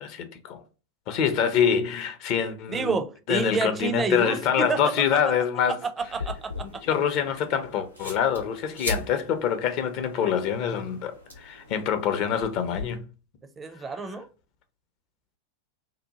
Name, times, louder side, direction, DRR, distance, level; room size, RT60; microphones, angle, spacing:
voice 1, 0.0-0.6 1.1-3.0 3.3-5.8 6.6-13.1, left 8 dB, 40° left, 0.5 m, -25 dB
voice 2, 2.7-4.8 6.1-6.5 13.6-14.3, right 4 dB, 15° right, 0.4 m, -28 dB
sound 1, 6.0-12.8, left 2 dB, 90° left, 0.8 m, -39 dB
2.8 x 2.1 x 2.7 m
figure-of-eight pair, 90°, 0 cm